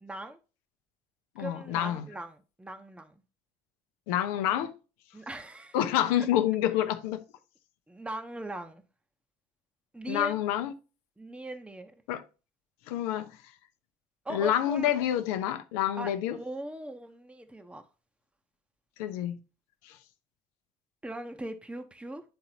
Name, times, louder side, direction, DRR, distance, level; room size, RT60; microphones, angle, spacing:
voice 1, 0.0-0.4 1.4-3.2 5.1-5.8 7.9-8.8 9.9-10.3 11.2-11.9 14.2-14.9 16.0-17.8 21.0-22.2, right 1 dB, 5° right, 0.9 m, -39 dB
voice 2, 1.4-2.1 4.1-4.7 5.7-7.2 10.1-10.7 12.1-12.2 12.9-13.3 14.3-16.4 19.0-19.4 19.8-20.0, left 11 dB, 70° left, 0.8 m, -28 dB
10.5 x 3.8 x 2.9 m
hypercardioid pair, 60°, 20 cm